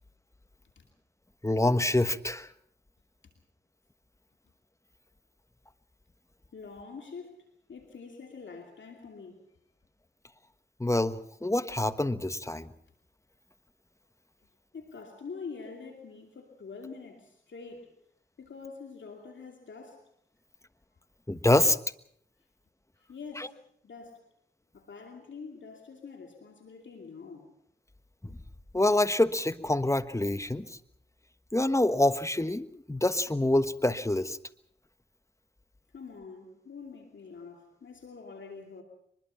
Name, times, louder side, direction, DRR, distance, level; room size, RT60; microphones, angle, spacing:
voice 1, 1.4-2.5 10.8-12.7 21.3-21.8 23.4-23.5 28.7-30.8 31.5-34.4, left 1 dB, 15° left, 13 dB, 1.3 m, -26 dB
voice 2, 6.5-7.4 7.7-9.4 14.7-17.9 18.4-20.0 23.1-24.2 24.7-27.5 35.9-38.8, left 5 dB, 80° left, 3 dB, 2.7 m, -45 dB
23.5 x 21.0 x 5.8 m, 0.68 s
cardioid pair, 40°, 19 cm